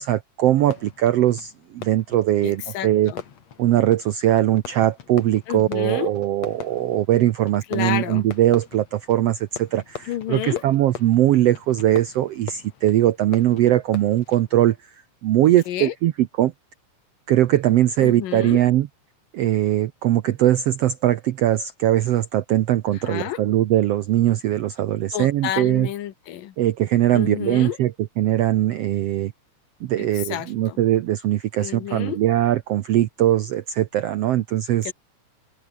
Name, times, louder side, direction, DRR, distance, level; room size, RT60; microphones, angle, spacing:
voice 1, 0.0-3.1 3.6-14.8 15.2-16.1 16.4-16.5 17.3-18.9 19.3-25.9 26.6-27.9 28.2-29.3 29.9-34.9, right 13 dB, 80° right, 1.4 m, -20 dB
Fireworks, 0.5-14.8, left 8 dB, 55° left, 3.2 m, -42 dB
voice 2, 2.4-3.2 5.5-6.1 7.7-8.3 10.0-10.6 15.7-15.9 18.0-18.6 22.9-23.4 25.1-26.5 27.1-27.8 30.0-30.8 31.6-32.2 34.8-34.9, left 12 dB, 85° left, 3.1 m, -30 dB
omnidirectional pair, 3.8 m